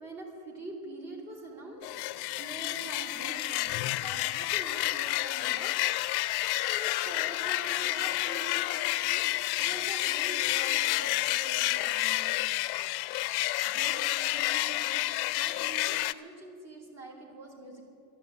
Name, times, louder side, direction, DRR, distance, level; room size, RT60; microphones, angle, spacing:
voice 1, 0.0-12.6 13.6-17.8, right 2 dB, 35° right, -2 dB, 3.0 m, -45 dB
sound 1, 1.8-16.1, left 17 dB, 60° left, 0.5 m, -30 dB
12.5 x 11.5 x 8.1 m, 2.5 s
cardioid pair, 180°, 46 cm